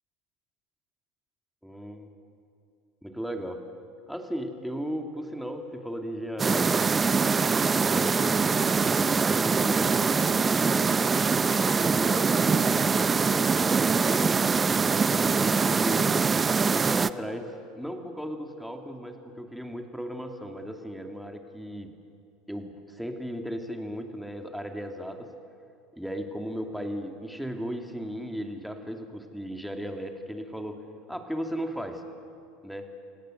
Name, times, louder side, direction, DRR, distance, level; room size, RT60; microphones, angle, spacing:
voice 1, 1.6-2.1 3.0-3.6 4.1-7.2 7.7-10.9 11.7-16.1 16.7-21.9 22.5-25.3 25.9-30.8 31.1-32.0 32.6-32.9, equal, ahead, 4 dB, 2.6 m, -36 dB
sound 1, 6.4-17.1, right 5 dB, 25° right, 0.7 m, -23 dB
28.5 x 17.5 x 8.0 m, 2.4 s
hypercardioid pair, 85°, 0 cm